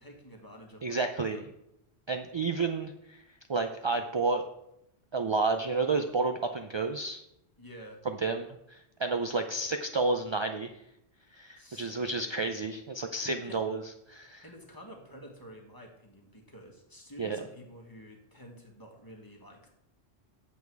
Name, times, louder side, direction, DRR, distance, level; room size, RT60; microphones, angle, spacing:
voice 1, 0.0-1.4 7.6-8.0 11.5-11.9 13.3-13.6 14.4-19.7, equal, 20° left, 1 dB, 1.5 m, -50 dB
voice 2, 0.8-1.4 2.1-3.2 3.5-4.4 5.1-7.2 8.1-10.7 11.3-13.8 14.1-14.4 17.2-17.4, right 3 dB, 50° right, 6 dB, 0.3 m, -31 dB
8.3 x 7.1 x 4.7 m, 0.81 s
omnidirectional pair, 1.1 m